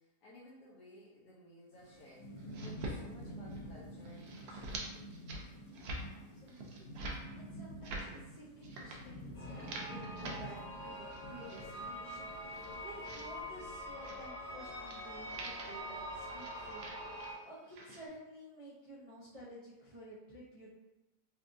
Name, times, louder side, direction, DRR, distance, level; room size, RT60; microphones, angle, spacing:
voice 1, 0.0-2.3 2.6-5.4, left 1 dB, 80° left, -8 dB, 1.3 m, -57 dB
Thunderstorm / Rain, 1.7-14.0, equal, 65° left, 0.7 m, -49 dB
sound 1, 2.4-3.0 3.3-3.8 4.1-4.9 5.1-5.4 5.7-6.0 6.5-7.2 7.7-8.1 8.6-9.0 9.4-10.4 10.8-11.7 12.2-13.2 14.0-14.2 14.9-15.0 15.3-15.8 16.4-17.4 17.6-18.1, right 2 dB, 85° right, 1.2 m, -45 dB
voice 2, 6.1-6.9 7.3-20.7, right 1 dB, 45° right, -9 dB, 0.4 m, -53 dB
sound 2, 9.3-17.3, equal, 40° left, 1.0 m, -45 dB
4.1 x 2.4 x 2.5 m, 0.98 s
omnidirectional pair, 1.7 m